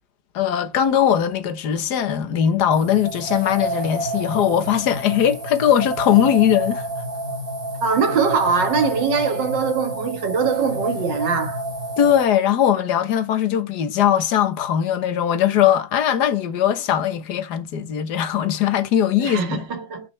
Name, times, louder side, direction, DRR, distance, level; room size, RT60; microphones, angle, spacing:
voice 1, 0.3-6.9 12.0-19.6, left 10 dB, 65° left, 1.7 m, -20 dB
sound 1, 2.7-12.2, right 1 dB, 50° right, 3.6 m, -30 dB
voice 2, 7.8-11.6 19.2-20.1, right 5 dB, 75° right, 2.2 m, -22 dB
9.8 x 5.5 x 3.3 m
omnidirectional pair, 1.9 m